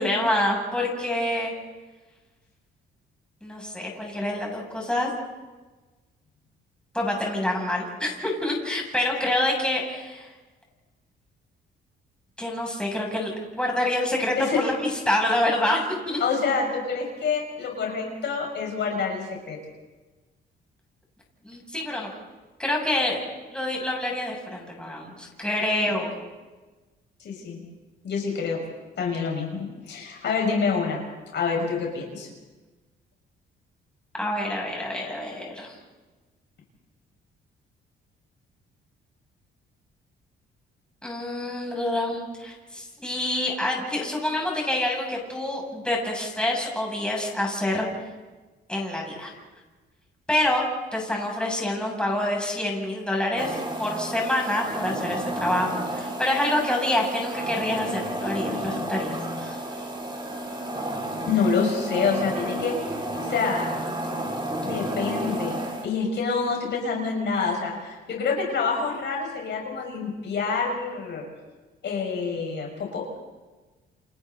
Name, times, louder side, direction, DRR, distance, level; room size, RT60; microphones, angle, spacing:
voice 1, 0.0-1.5 3.4-5.1 6.9-10.3 12.4-16.2 21.4-22.1 22.6-23.2 23.5-26.1 34.2-35.8 41.0-47.9 48.7-49.3 50.3-50.6 50.9-59.6, left 1 dB, 5° left, -2 dB, 7.4 m, -27 dB
voice 2, 16.2-19.6 27.2-27.6 28.0-28.6 29.0-31.0 31.3-32.3 61.2-62.8 63.2-63.9 64.6-71.2 71.8-73.2, left 5 dB, 65° left, 0 dB, 6.0 m, -27 dB
sound 1, 53.4-65.9, right 1 dB, 25° right, 3.8 m, -31 dB
29.5 x 27.0 x 4.1 m, 1.2 s
cardioid pair, 90°, 20 cm